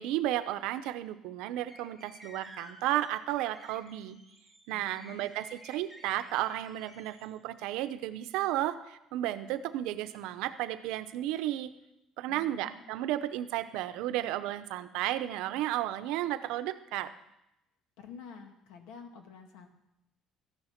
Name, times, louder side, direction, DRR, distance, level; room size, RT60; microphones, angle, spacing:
voice 1, 0.0-4.2 4.7-11.7 12.2-17.1, right 13 dB, 90° right, 11 dB, 0.8 m, -33 dB
sound 1, 1.7-7.3, equal, 10° left, 2.5 m, -53 dB
voice 2, 4.7-5.3 12.3-12.9 18.0-19.7, left 6 dB, 85° left, 5 dB, 2.0 m, -49 dB
14.0 x 9.8 x 5.9 m, 0.86 s
cardioid pair, 170°, 0 cm